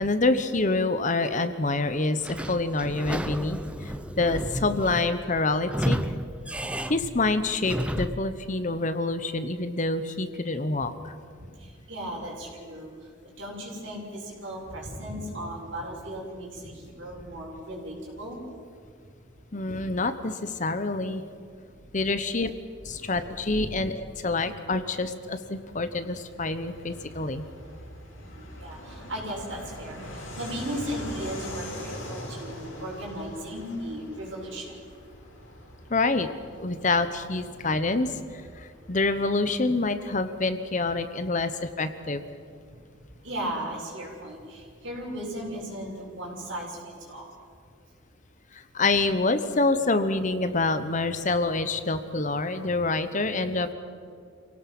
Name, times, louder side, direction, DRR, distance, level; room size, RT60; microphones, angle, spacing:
voice 1, 0.0-6.0 6.9-11.1 19.5-21.2 21.9-22.5 22.8-27.4 35.9-36.3 36.6-38.1 38.6-42.2 48.5-53.7, left 3 dB, 40° left, 11 dB, 1.0 m, -27 dB
Sliding door / Squeak, 2.2-8.3, equal, 5° right, 0.6 m, -32 dB
voice 2, 11.6-12.9 13.4-18.4 22.8-23.2 23.6-23.7 28.2-34.7 43.2-47.2, right 1 dB, 65° right, -3 dB, 6.9 m, -36 dB
Fixed-wing aircraft airplane, 25.2-41.4, left 1 dB, 85° left, 7.2 m, -43 dB
28.0 x 17.5 x 6.1 m, 2.3 s
head